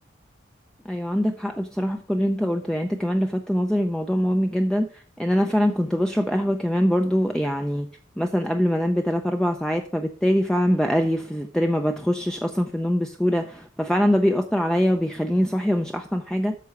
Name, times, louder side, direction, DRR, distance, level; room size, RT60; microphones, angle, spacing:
voice 1, 0.8-7.9 8.2-16.6, equal, 5° left, 4 dB, 0.5 m, -23 dB
8.4 x 6.3 x 5.8 m, 0.43 s
head